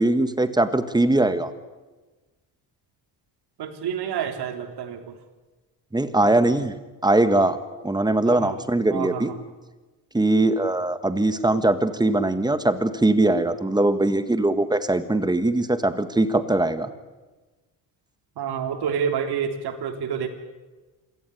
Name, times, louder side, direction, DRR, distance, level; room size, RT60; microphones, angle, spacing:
voice 1, 0.0-1.5 5.9-6.7 7.0-7.6 7.8-9.3 10.1-16.9, right 2 dB, 10° right, 11 dB, 1.6 m, -21 dB
voice 2, 3.6-5.1 8.3-8.6 8.9-9.4 18.4-20.3, right 7 dB, 65° right, 7 dB, 3.4 m, -28 dB
26.5 x 17.5 x 9.9 m, 1.2 s
cardioid pair, 130°, 41 cm